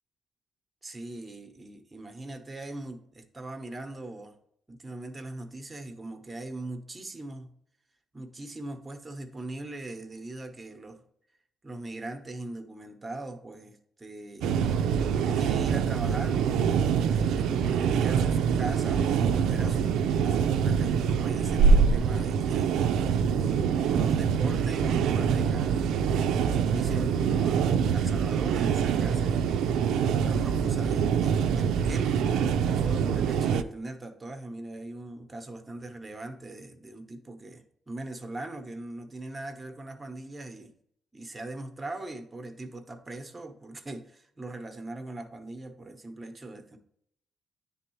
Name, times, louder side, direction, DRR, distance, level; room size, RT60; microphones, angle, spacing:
voice 1, 0.8-4.4 4.7-7.5 8.1-11.0 11.6-14.6 15.2-22.7 23.0-25.9 26.5-29.7 30.0-32.2 32.7-40.7 41.1-46.8, right 2 dB, 20° right, 5 dB, 0.9 m, -40 dB
sound 1, 14.4-33.6, right 6 dB, 85° right, 0.4 m, -25 dB
9.7 x 3.5 x 3.1 m, 0.70 s
cardioid pair, 90°, 0 cm